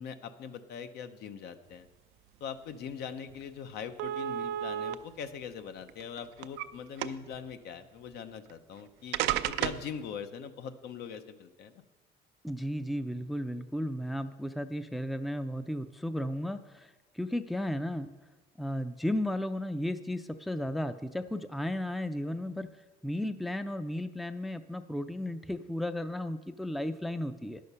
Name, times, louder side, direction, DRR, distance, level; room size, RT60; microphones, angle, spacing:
voice 1, 0.0-1.9 2.4-9.2 9.5-11.7, left 7 dB, 75° left, 9 dB, 0.7 m, -42 dB
sound 1, 2.9-3.0 3.3-3.4 4.0-4.9 5.8-6.7 7.0-7.4 8.5-8.6 9.1-9.9, right 12 dB, 90° right, 0.4 m, -32 dB
voice 2, 12.4-18.1 18.6-22.7 23.0-27.6, left 1 dB, ahead, 11 dB, 0.4 m, -34 dB
10.5 x 6.5 x 5.5 m, 1.2 s
cardioid pair, 110°, 17 cm